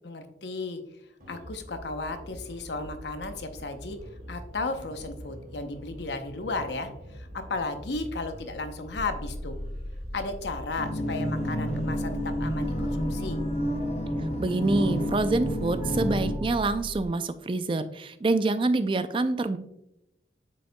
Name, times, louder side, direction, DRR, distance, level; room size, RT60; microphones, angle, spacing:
voice 1, 0.0-0.8 1.3-4.0 4.3-9.6 10.1-13.4, left 3 dB, 80° left, 7 dB, 0.8 m, -34 dB
sound 1, 1.2-15.9, equal, 55° right, 2.3 m, -45 dB
sound 2, 8.9-17.1, equal, 10° right, 2.4 m, -38 dB
sound 3, 10.8-16.4, equal, 35° left, 0.8 m, -30 dB
voice 2, 14.4-19.6, right 2 dB, 30° right, 11 dB, 0.3 m, -26 dB
8.2 x 5.2 x 2.2 m, 0.82 s
head